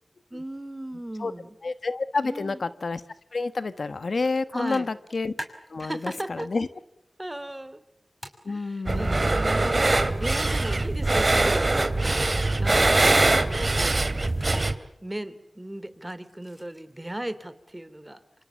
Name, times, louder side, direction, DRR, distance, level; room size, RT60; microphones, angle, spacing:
voice 1, 0.3-1.5 2.2-2.6 4.5-4.9 5.8-6.5 7.2-7.8 8.5-11.6 12.6-14.3 15.0-18.2, right 1 dB, 20° right, 14 dB, 3.1 m, -36 dB
voice 2, 1.6-3.0 3.3-5.3 5.7-6.7 8.4-9.4, left 3 dB, 75° left, 13 dB, 1.2 m, -29 dB
sound 1, 4.2-4.4 4.7-6.5 8.2-8.4 11.9-12.5 14.2-14.6 16.0-16.9, equal, 15° left, 5.8 m, -41 dB
sound 2, 8.9-14.8, right 2 dB, 45° right, 2.6 m, -22 dB
27.5 x 27.0 x 7.2 m, 0.80 s
cardioid pair, 45°, 0 cm